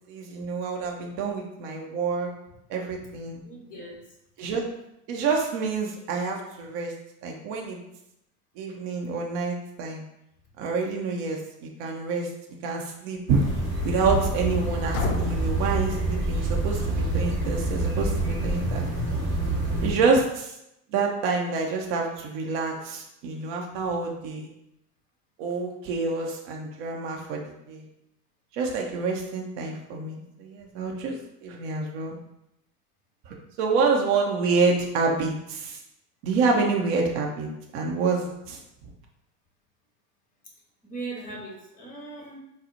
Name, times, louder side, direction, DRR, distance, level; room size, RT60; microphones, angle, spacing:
voice 1, 0.1-2.3 2.7-3.4 4.4-4.7 5.1-6.9 7.2-7.8 8.6-10.0 10.6-12.3 12.6-13.4 13.8-18.8 19.8-20.5 20.9-24.5 25.4-27.8 28.5-32.2 33.3-35.8 36.2-38.6, right 4 dB, 40° right, 1 dB, 0.6 m, -27 dB
voice 2, 3.4-4.0 40.8-42.4, right 3 dB, 15° left, -2 dB, 1.0 m, -39 dB
sound 1, 13.3-19.9, right 2 dB, 25° right, 1.1 m, -27 dB
sound 2, 14.9-16.8, left 6 dB, 65° left, 0.6 m, -33 dB
4.0 x 2.0 x 2.7 m, 0.83 s
hypercardioid pair, 95°, 48 cm